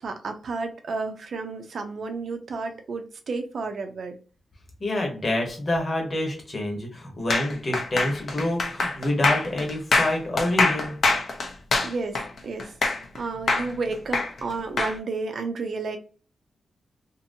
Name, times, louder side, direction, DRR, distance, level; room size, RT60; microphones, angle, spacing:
voice 1, 0.0-4.2 11.8-16.0, right 3 dB, 65° right, 0.6 m, -32 dB
voice 2, 4.8-11.0, left 1 dB, 35° left, 1.1 m, -27 dB
sound 1, 7.3-13.2 13.5-14.9, left 3 dB, 60° left, 0.7 m, -24 dB
2.8 x 2.6 x 2.6 m
wide cardioid pair, 120°, 0 cm